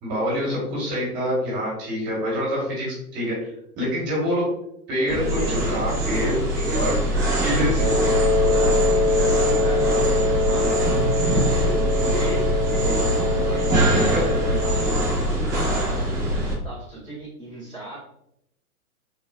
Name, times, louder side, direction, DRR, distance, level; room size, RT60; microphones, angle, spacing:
voice 1, 0.0-3.5 3.8-4.6 4.9-6.4 6.7-6.9 7.4-7.8 13.9-14.2, equal, 25° right, -5 dB, 1.0 m, -26 dB
voice 2, 5.1-16.3 16.6-18.0, right 1 dB, 15° left, -8 dB, 1.0 m, -36 dB
sound 1, 5.1-16.5, right 1 dB, 10° right, 0.4 m, -23 dB
Wind instrument woodwind instrument, 7.8-15.1, left 2 dB, 50° right, 0.7 m, -24 dB
3.3 x 2.1 x 2.3 m, 0.77 s
hypercardioid pair, 135°, 45 cm